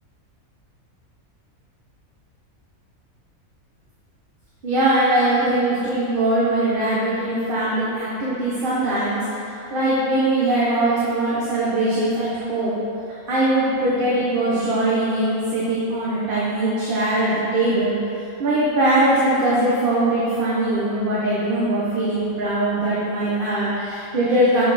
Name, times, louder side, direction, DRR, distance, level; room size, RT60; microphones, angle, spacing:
voice 1, 4.6-9.2 9.7-12.8 13.3-18.0 18.4-24.6, right 1 dB, 40° right, -8 dB, 1.3 m, -21 dB
7.4 x 6.8 x 4.2 m, 2.7 s
omnidirectional pair, 1.4 m